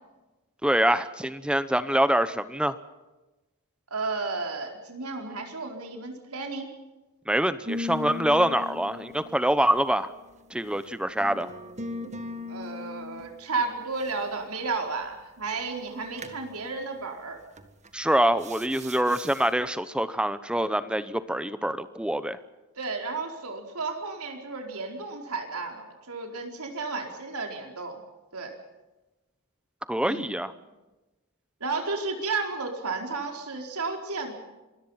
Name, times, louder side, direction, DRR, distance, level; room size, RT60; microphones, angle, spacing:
voice 1, 0.6-2.7 7.3-10.1 10.5-11.5 17.9-22.4 29.9-30.5, right 1 dB, 5° right, 13 dB, 0.8 m, -25 dB
voice 2, 3.9-6.7 12.5-17.4 22.8-28.0 28.3-28.5 30.0-30.2 31.6-34.3, right 4 dB, 80° right, 3 dB, 4.5 m, -33 dB
sound 1, 7.7-10.5 11.2-13.3 16.2-16.4 17.6-17.9 18.4-19.4, left 3 dB, 30° right, 1.8 m, -38 dB
26.5 x 21.0 x 5.7 m, 1.1 s
head